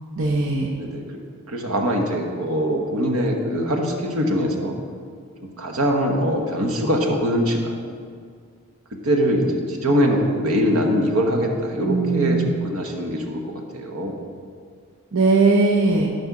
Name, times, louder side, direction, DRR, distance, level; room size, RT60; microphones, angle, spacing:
voice 1, 0.2-0.7 11.9-12.5 15.1-16.1, right 3 dB, 65° right, -1 dB, 0.7 m, -19 dB
voice 2, 0.8-1.2 1.5-4.7 5.6-7.7 8.9-14.3, equal, 90° right, 2 dB, 1.2 m, -22 dB
12.0 x 5.3 x 4.8 m, 2.1 s
head